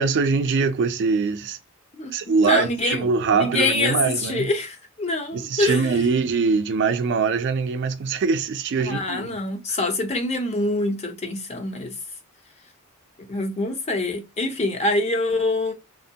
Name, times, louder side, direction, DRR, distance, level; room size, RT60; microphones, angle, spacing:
voice 1, 0.0-1.6 2.1-4.5 5.3-9.4, right 5 dB, 55° right, 0.4 m, -23 dB
voice 2, 2.4-3.1 3.4-6.1 8.8-12.0 13.2-15.7, left 2 dB, 30° left, 0.6 m, -25 dB
2.9 x 2.1 x 2.7 m
head